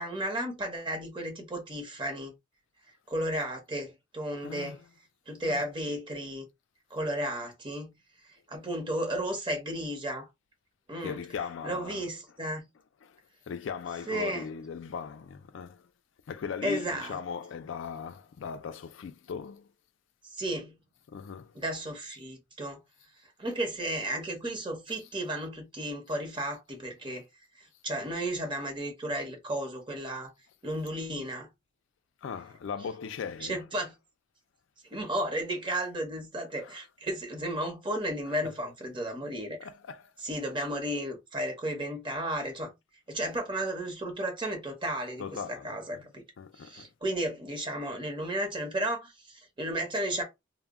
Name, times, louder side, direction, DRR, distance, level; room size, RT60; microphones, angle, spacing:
voice 1, 0.0-2.3 3.1-4.8 5.3-6.4 6.9-7.9 8.5-10.3 10.9-11.2 11.6-12.7 14.1-14.5 16.6-17.2 20.4-20.8 21.5-22.8 23.4-27.2 27.8-30.3 30.6-31.5 33.4-33.9 34.9-39.6 40.2-42.7 43.1-46.2 46.6-50.2, right 1 dB, 25° right, 0.8 m, -33 dB
voice 2, 4.4-4.9 5.4-5.7 11.0-12.4 13.0-13.2 13.5-15.9 16.3-19.7 21.1-21.5 24.9-25.1 32.2-33.9 35.8-35.9 36.5-36.9 38.2-38.6 39.6-40.1 45.2-46.1 46.4-46.9, left 6 dB, 75° left, 0.3 m, -39 dB
2.2 x 2.0 x 3.5 m
head